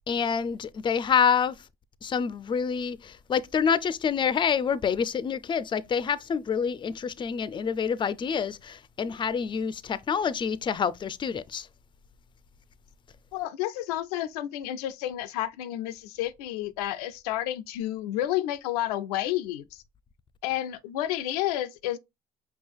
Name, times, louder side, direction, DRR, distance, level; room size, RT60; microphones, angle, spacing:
voice 1, 0.1-1.5 2.0-11.7, left 7 dB, 25° left, 0.4 m, -27 dB
voice 2, 13.3-19.6 20.4-22.0, left 13 dB, 85° left, 0.4 m, -30 dB
5.4 x 2.4 x 3.4 m
hypercardioid pair, 70°, 19 cm